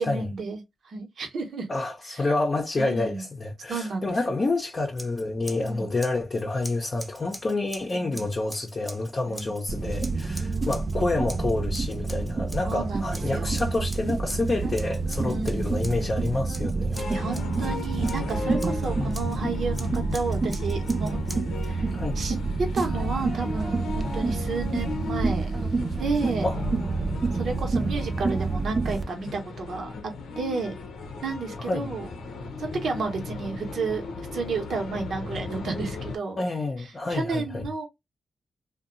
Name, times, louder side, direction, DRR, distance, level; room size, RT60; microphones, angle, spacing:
voice 1, 0.0-1.7 2.1-2.2 2.8-3.3 3.7-4.2 5.6-5.9 7.9-8.3 9.3-9.6 10.3-10.5 12.6-13.5 15.2-15.7 17.1-21.2 21.6-21.9 22.1-22.4 22.7-25.5 26.0-26.5 27.3-30.7 31.2-32.1 32.6-34.0 34.3-36.4 36.8-37.9, right 4 dB, 70° right, 0.9 m, -32 dB
voice 2, 1.7-17.0 19.0-19.3 21.9-22.2 26.4-26.6 31.7-31.9 36.4-37.7, left 2 dB, 40° left, 0.6 m, -28 dB
Scissors, 4.9-5.7 6.0-9.6 10.0-11.0 11.3-12.8 13.1-17.6 18.0-19.4 19.7-21.7, equal, 5° right, 0.8 m, -44 dB
sound 1, 9.7-29.0, right 3 dB, 45° right, 0.4 m, -28 dB
sound 2, 16.9-36.2, left 4 dB, 90° left, 0.6 m, -37 dB
2.7 x 2.2 x 2.5 m
cardioid pair, 65°, 0 cm